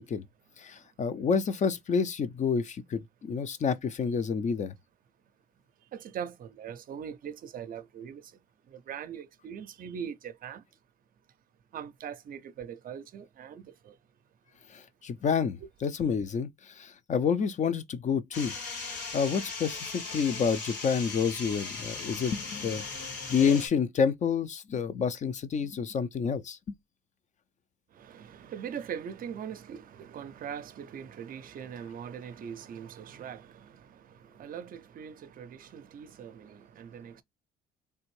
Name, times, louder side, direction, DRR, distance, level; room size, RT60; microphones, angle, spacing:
voice 1, 0.6-4.7 15.0-16.5 16.8-18.5 19.1-22.9 23.3-26.7, left 6 dB, 40° left, 0.5 m, -28 dB
voice 2, 5.9-10.6 11.7-14.0 27.9-37.2, right 8 dB, 50° right, 0.5 m, -41 dB
sound 1, 18.3-23.7, left 4 dB, 70° left, 2.3 m, -38 dB
3.3 x 2.5 x 3.1 m
supercardioid pair, 75°, 19 cm